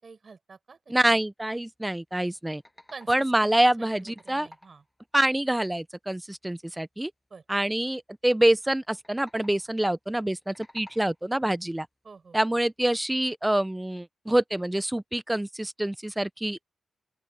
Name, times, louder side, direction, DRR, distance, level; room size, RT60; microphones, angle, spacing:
voice 1, 0.0-1.2 2.9-4.8 7.3-7.4 12.0-12.6, right 4 dB, 50° right, 6.5 m, -48 dB
voice 2, 0.9-2.6 3.1-4.5 5.1-7.1 7.5-11.9 12.3-16.6, right 1 dB, 10° right, 1.0 m, -26 dB
sound 1, 2.3-3.5 3.8-5.0 8.9-9.8 10.3-11.4, left 1 dB, 10° left, 7.9 m, -54 dB
open air
supercardioid pair, 50°, 0 cm